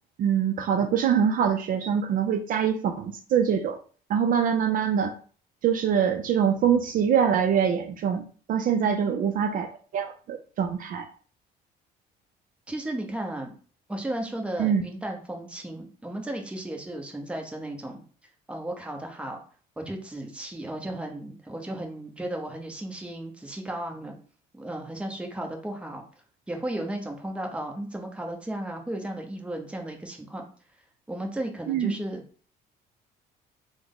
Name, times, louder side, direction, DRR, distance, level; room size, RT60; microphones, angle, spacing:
voice 1, 0.2-3.8 4.1-5.1 5.6-9.7 9.9-11.1 14.6-14.8 31.7-31.9, right 8 dB, 55° right, 6 dB, 0.4 m, -24 dB
voice 2, 8.8-9.2 12.7-13.5 13.9-18.0 18.5-19.4 19.8-24.2 24.5-26.0 26.5-30.4 31.1-32.2, right 1 dB, 5° right, 1 dB, 0.7 m, -34 dB
3.5 x 2.0 x 3.5 m, 0.41 s
cardioid pair, 110°, 17 cm